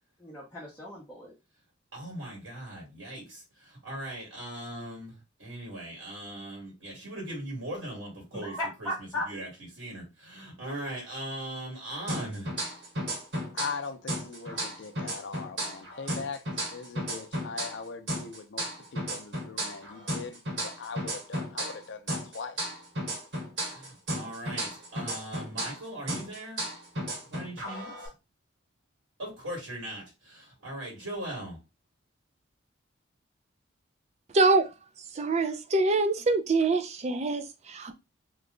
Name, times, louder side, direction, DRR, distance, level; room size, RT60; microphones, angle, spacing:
voice 1, 0.2-1.3 8.3-9.3, left 1 dB, 10° left, 0.8 m, -36 dB
voice 2, 1.9-5.1 5.4-8.9 9.3-9.5 9.8-12.5 23.7-26.6 27.3-27.9 29.2-31.6, right 1 dB, 80° right, 1.8 m, -39 dB
sound 1, 12.1-13.8 14.1-17.8 18.1-21.8 22.1-25.8 26.1-28.1, right 1 dB, 60° right, 1.4 m, -34 dB
voice 3, 13.5-16.4 16.7-18.7 18.9-22.6, left 5 dB, 65° left, 0.5 m, -40 dB
voice 4, 34.3-34.7 35.2-37.9, right 3 dB, 35° right, 0.4 m, -25 dB
3.0 x 2.3 x 3.6 m
head